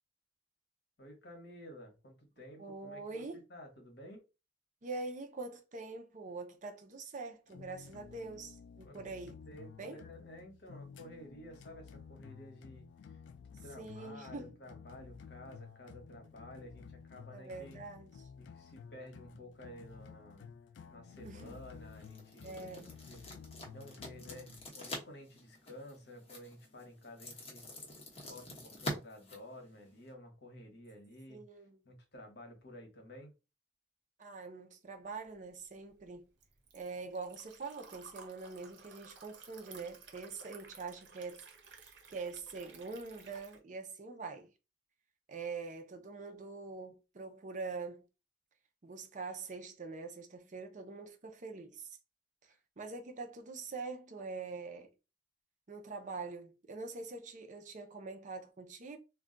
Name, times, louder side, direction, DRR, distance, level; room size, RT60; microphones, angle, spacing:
voice 1, 1.0-4.2 8.8-9.1 9.5-13.2 13.6-17.8 18.4-20.5 20.9-23.2 23.7-27.7 28.3-31.4 31.8-33.3, left 1 dB, 65° left, 1.0 m, -52 dB
voice 2, 2.6-3.4 4.8-9.3 9.8-10.0 13.8-14.6 17.3-18.3 21.2-21.6 22.4-23.0 31.3-31.8 34.2-36.3 36.7-41.4 41.7-44.5 45.3-48.1 48.8-52.0 52.4-54.9 55.7-59.0, right 4 dB, 45° right, 0.5 m, -44 dB
sound 1, 7.5-24.7, left 6 dB, 85° left, 0.3 m, -53 dB
sound 2, 21.1-30.1, left 1 dB, 35° left, 0.9 m, -47 dB
Liquid, 35.3-43.6, right 5 dB, 80° right, 0.7 m, -56 dB
2.3 x 2.2 x 3.7 m
head